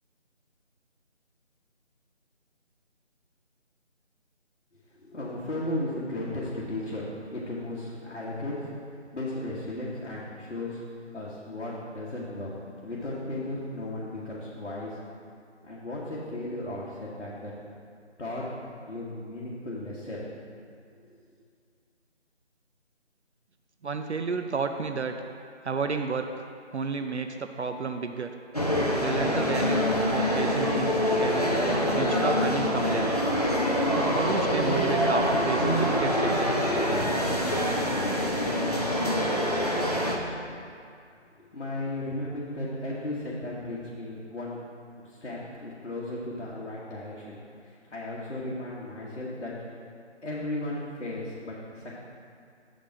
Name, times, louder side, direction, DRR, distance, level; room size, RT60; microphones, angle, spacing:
voice 1, 5.0-7.0 7.3-8.6 9.1-10.8 11.1-12.5 12.8-15.0 15.6-17.5 18.2-18.4 18.9-20.5 41.4-44.6 45.0-49.5 50.2-52.0, left 1 dB, 65° left, -7 dB, 1.5 m, -35 dB
voice 2, 23.8-25.2 25.6-26.5 26.7-28.3 29.0-31.6 31.9-33.1 34.1-36.8, right 4 dB, 70° right, 6 dB, 0.5 m, -31 dB
sound 1, 28.5-40.2, equal, 35° left, 0.6 m, -25 dB
7.2 x 5.2 x 5.8 m, 2.3 s
figure-of-eight pair, 175°, 36 cm